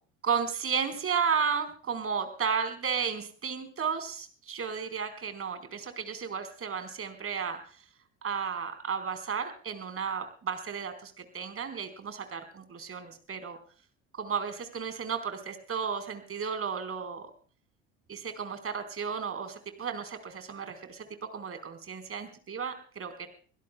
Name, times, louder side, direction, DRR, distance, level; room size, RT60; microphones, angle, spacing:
voice 1, 0.2-7.6 8.2-13.6 14.1-17.3 18.1-23.3, right 6 dB, 40° right, 8 dB, 4.5 m, -33 dB
26.5 x 16.5 x 2.3 m, 0.42 s
hypercardioid pair, 65°, 36 cm